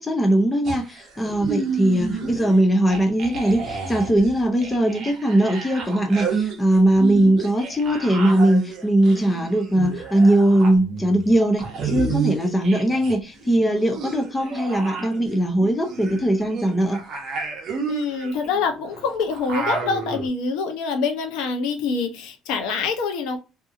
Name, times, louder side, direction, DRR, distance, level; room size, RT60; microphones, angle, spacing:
voice 1, 0.0-17.0, right 1 dB, 10° left, 0.5 m, -20 dB
sound 1, 0.6-2.6 2.9-13.2 13.4-20.3, right 5 dB, 40° right, 0.7 m, -31 dB
voice 2, 17.8-23.4, left 5 dB, 85° left, 0.7 m, -25 dB
2.7 x 2.6 x 2.4 m
cardioid pair, 170°, 0 cm